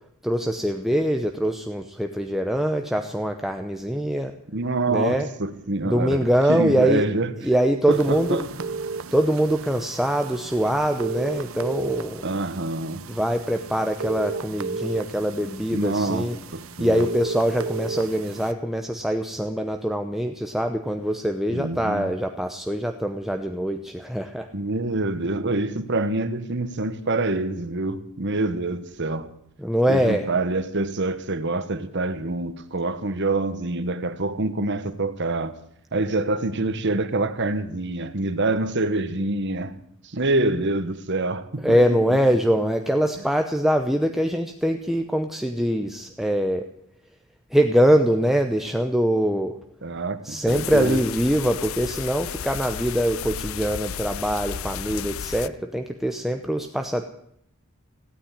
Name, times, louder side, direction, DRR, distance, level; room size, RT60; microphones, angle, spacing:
voice 1, 0.2-4.3 4.9-5.3 5.8-7.0 7.4-8.4 9.1-12.2 13.1-16.4 16.8-24.5 29.6-30.2 41.6-46.6 47.5-49.6 50.2-57.1, equal, ahead, 0.8 m, -23 dB
voice 2, 4.5-7.5 7.9-8.5 12.2-13.1 15.7-17.1 21.5-22.1 24.5-29.3 29.9-35.5 35.9-39.7 40.0-42.2 49.8-51.1, right 2 dB, 60° right, 1.3 m, -26 dB
sound 1, 7.9-18.5, right 4 dB, 80° right, 0.9 m, -34 dB
sound 2, 50.5-55.5, left 8 dB, 75° left, 0.5 m, -33 dB
16.5 x 9.1 x 9.8 m
head